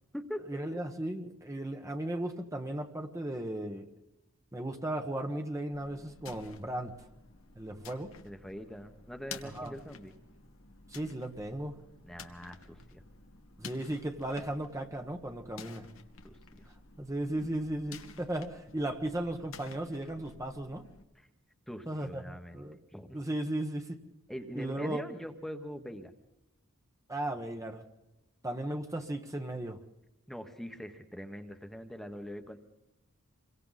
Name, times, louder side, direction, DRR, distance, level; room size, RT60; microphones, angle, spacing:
voice 1, 0.5-3.9 4.5-7.0 7.6-8.1 9.4-9.7 10.9-11.8 13.6-15.9 17.0-20.8 21.9-22.8 23.1-24.0 24.5-25.0 27.1-27.8 28.4-29.8, right 1 dB, 15° right, 4 dB, 1.3 m, -36 dB
sound 1, 5.7-21.0, left 4 dB, 80° left, 1.8 m, -51 dB
voice 2, 8.2-10.2 12.0-13.0 16.2-16.7 21.1-21.3 21.7-22.6 22.9-23.2 24.3-26.1 30.3-32.6, equal, ahead, 6 dB, 1.4 m, -43 dB
27.5 x 23.5 x 4.1 m, 0.94 s
head